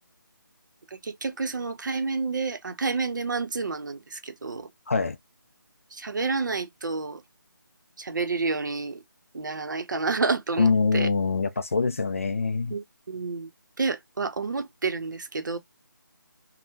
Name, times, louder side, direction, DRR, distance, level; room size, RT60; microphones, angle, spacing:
voice 1, 0.9-4.7 5.9-7.2 8.0-9.0 9.3-11.1 12.7-13.5 13.8-15.6, right 4 dB, 60° right, 0.6 m, -29 dB
voice 2, 10.6-12.7, left 4 dB, 40° left, 0.3 m, -24 dB
2.8 x 2.1 x 3.3 m
figure-of-eight pair, 170°, 11 cm